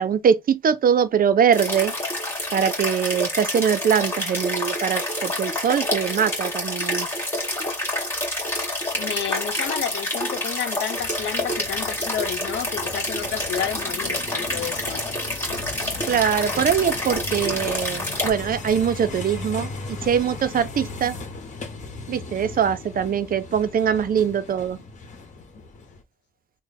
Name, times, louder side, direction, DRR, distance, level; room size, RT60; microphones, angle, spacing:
voice 1, 0.0-1.9 2.5-7.1 16.1-21.2 22.1-24.8, right 8 dB, 45° right, 0.5 m, -22 dB
sound 1, 1.5-18.3, left 1 dB, 10° left, 1.9 m, -28 dB
voice 2, 8.9-15.0, left 9 dB, 65° left, 0.8 m, -31 dB
sound 2, 11.0-26.0, left 3 dB, 40° left, 1.1 m, -37 dB
3.2 x 2.1 x 4.0 m
cardioid pair, 90°, 20 cm